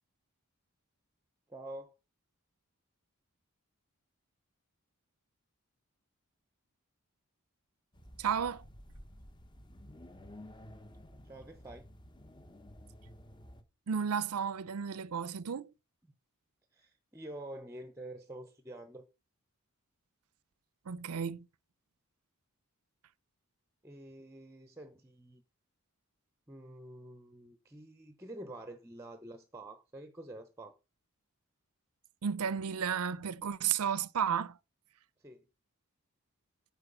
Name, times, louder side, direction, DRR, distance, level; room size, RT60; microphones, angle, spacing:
voice 1, 1.5-1.9 11.2-11.9 16.7-19.1 23.8-25.4 26.5-30.8 35.2-35.4, right 1 dB, 15° right, 0.7 m, -47 dB
sound 1, 7.9-13.6, left 1 dB, 20° left, 0.9 m, -53 dB
voice 2, 8.2-8.6 13.9-15.7 20.9-21.5 32.2-34.6, right 7 dB, 85° right, 0.5 m, -33 dB
8.9 x 4.6 x 6.7 m
head